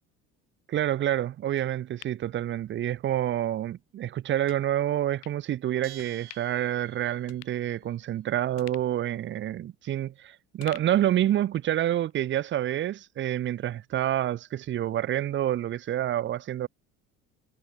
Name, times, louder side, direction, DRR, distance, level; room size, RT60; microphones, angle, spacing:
voice 1, 0.7-16.7, right 12 dB, 25° right, 0.4 m, -28 dB
sound 1, 1.6-3.2 3.6-3.7 4.5-4.6 5.2-5.4 6.0-6.6 6.9-7.0 7.3-8.2 8.6-10.2 10.6-11.8 12.1-12.2, left 17 dB, 75° left, 3.3 m, -51 dB
Bell, 5.8-7.4, right 15 dB, 55° right, 3.1 m, -48 dB
hypercardioid pair, 55°, 47 cm